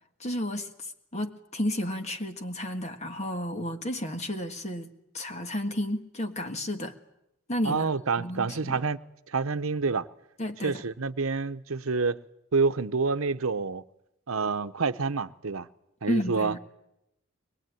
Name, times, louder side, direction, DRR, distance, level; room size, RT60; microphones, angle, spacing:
voice 1, 0.2-6.9 7.5-8.8 10.4-10.8 16.1-16.6, equal, 35° left, 1.6 m, -32 dB
voice 2, 7.6-9.0 9.3-10.1 10.6-12.2 12.5-13.8 14.3-15.7 16.0-16.5, right 4 dB, 85° right, 0.9 m, -28 dB
22.5 x 22.0 x 9.2 m
head